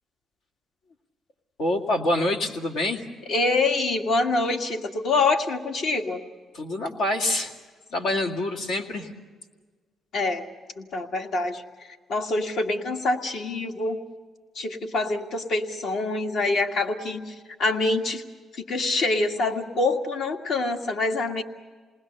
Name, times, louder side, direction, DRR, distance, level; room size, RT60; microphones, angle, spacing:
voice 1, 1.6-3.0 6.5-7.5 7.9-9.1, left 1 dB, 90° left, 2 dB, 2.3 m, -26 dB
voice 2, 3.3-6.2 10.1-10.4 10.8-11.6 12.1-14.0 14.6-17.3 17.6-18.2 18.5-21.4, left 3 dB, 70° left, 3 dB, 1.9 m, -25 dB
28.5 x 20.0 x 6.7 m, 1.5 s
cardioid pair, 90°, 0 cm